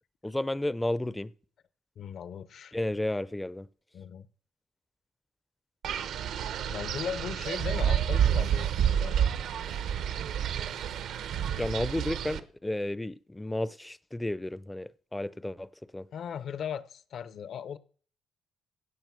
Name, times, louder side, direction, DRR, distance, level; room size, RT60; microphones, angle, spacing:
voice 1, 0.2-1.3 2.7-3.7 11.6-16.1, left 1 dB, 10° left, 0.5 m, -32 dB
voice 2, 2.0-2.7 3.9-4.3 6.7-9.3 16.1-17.8, left 8 dB, 55° left, 0.8 m, -38 dB
Wind, 5.8-12.4, right 9 dB, 75° right, 0.9 m, -29 dB
16.5 x 6.0 x 6.1 m
cardioid pair, 130°, 0 cm